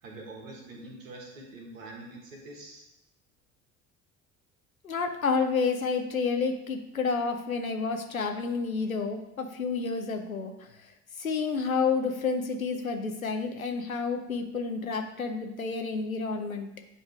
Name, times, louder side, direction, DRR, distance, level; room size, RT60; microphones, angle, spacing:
voice 1, 0.0-2.8, right 2 dB, 75° right, 0 dB, 1.7 m, -45 dB
voice 2, 4.8-10.5 11.2-16.7, left 4 dB, 90° left, 5 dB, 0.7 m, -30 dB
9.5 x 3.2 x 4.6 m, 0.89 s
figure-of-eight pair, 55°, 40 cm